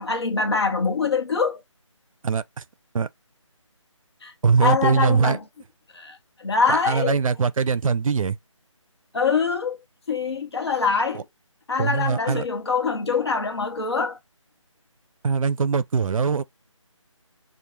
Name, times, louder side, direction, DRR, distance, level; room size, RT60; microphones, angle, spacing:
voice 1, 0.0-1.6 4.2-4.3 4.6-5.4 5.9-7.2 9.1-9.8 10.1-11.3 11.7-14.2, left 5 dB, 50° left, 0.7 m, -24 dB
voice 2, 2.2-2.6 2.9-3.1 4.4-5.4 6.7-8.4 11.1-11.2 11.8-12.5 15.2-16.4, right 5 dB, 85° right, 0.4 m, -22 dB
2.4 x 2.1 x 3.0 m
figure-of-eight pair, 175°, 17 cm